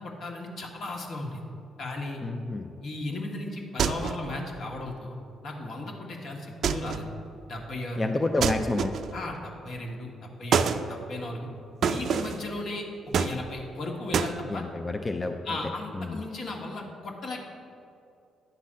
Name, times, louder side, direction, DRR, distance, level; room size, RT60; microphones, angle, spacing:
voice 1, 0.0-1.4 1.8-2.2 2.8-5.1 5.4-7.1 7.5-8.1 9.1-11.5 11.8-12.8 13.2-14.6 15.4-17.4, left 2 dB, 60° left, 0 dB, 1.5 m, -36 dB
voice 2, 2.2-2.7 8.0-9.0 14.5-15.6 15.9-16.2, left 2 dB, 25° left, 4 dB, 0.5 m, -29 dB
sound 1, 3.8-4.3 6.6-7.1 8.4-9.2 10.5-10.8 11.8-12.4 13.1-13.8 14.1-14.4, right 7 dB, 65° right, 0.4 m, -27 dB
10.0 x 4.0 x 7.4 m, 2.6 s
cardioid pair, 90°, 0 cm